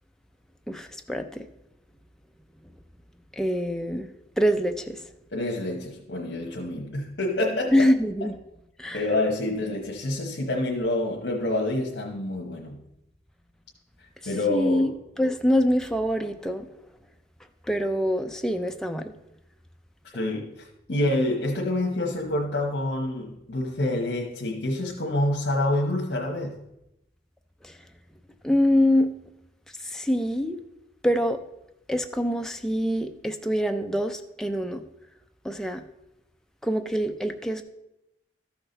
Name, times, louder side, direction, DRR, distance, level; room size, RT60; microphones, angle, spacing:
voice 1, 0.7-1.4 3.3-4.1 4.4-5.0 7.7-8.4 8.8-9.0 14.5-16.7 17.7-19.1 27.6-27.8 28.4-29.1 29.8-30.6 31.0-31.4 31.9-34.8 35.4-35.8 36.6-37.6, equal, 5° left, 0.5 m, -25 dB
voice 2, 5.3-7.7 8.9-12.8 14.2-14.9 20.0-26.6, left 1 dB, 75° left, 1.1 m, -27 dB
13.5 x 6.0 x 3.9 m
head